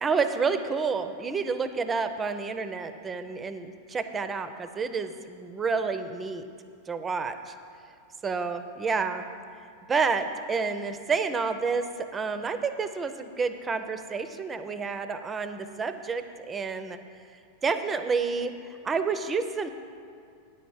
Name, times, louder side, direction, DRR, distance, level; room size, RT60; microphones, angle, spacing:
voice 1, 0.0-6.5 6.9-7.5 8.2-9.2 9.9-17.0 17.6-19.7, right 5 dB, 20° right, 10 dB, 0.5 m, -29 dB
9.6 x 5.2 x 7.3 m, 2.3 s
figure-of-eight pair, 90°, 0 cm